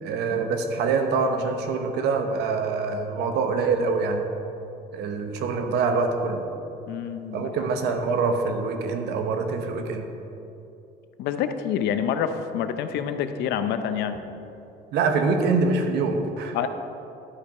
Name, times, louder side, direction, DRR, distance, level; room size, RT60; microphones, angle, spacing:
voice 1, 0.0-4.3 4.9-6.5 7.3-10.1 14.9-16.6, right 4 dB, 80° right, 6 dB, 0.9 m, -25 dB
voice 2, 6.9-7.5 11.2-14.2 16.5-16.7, left 8 dB, 85° left, 9 dB, 0.6 m, -27 dB
11.5 x 5.3 x 4.9 m, 2.9 s
cardioid pair, 110°, 17 cm